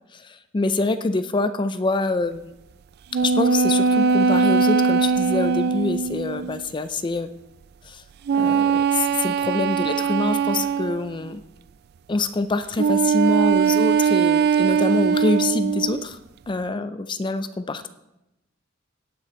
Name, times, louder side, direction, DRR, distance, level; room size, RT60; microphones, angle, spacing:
voice 1, 0.1-2.5 3.2-7.3 7.9-8.0 8.3-11.4 12.1-16.2 16.5-17.9, left 3 dB, 25° left, 11 dB, 0.4 m, -25 dB
sound 1, 3.1-6.7 8.3-11.2 12.8-16.1, right 6 dB, 50° right, 0.3 m, -21 dB
17.5 x 6.3 x 4.4 m, 0.90 s
head